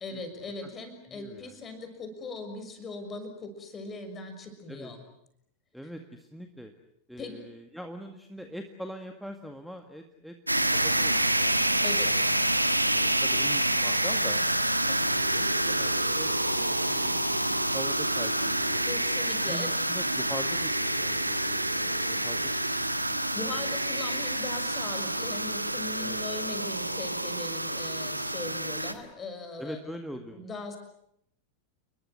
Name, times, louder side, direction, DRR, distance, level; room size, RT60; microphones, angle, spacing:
voice 1, 0.0-5.0 7.2-7.3 11.8-12.1 18.8-19.8 22.1-22.2 23.1-29.8 30.3-30.8, left 3 dB, 20° left, 7 dB, 6.2 m, -40 dB
voice 2, 1.1-1.6 4.7-4.9 5.7-6.7 7.1-10.4 10.7-12.2 12.9-14.5 14.9-19.0 19.4-22.5 23.1-23.7 26.0-26.2 29.6-30.5, equal, ahead, 5 dB, 1.9 m, -43 dB
sound 1, 10.5-28.9, right 1 dB, 85° right, 1.6 m, -27 dB
sound 2, 23.4-25.1, right 6 dB, 70° right, 4.8 m, -50 dB
30.0 x 22.0 x 8.0 m, 0.73 s
figure-of-eight pair, 90°, 0 cm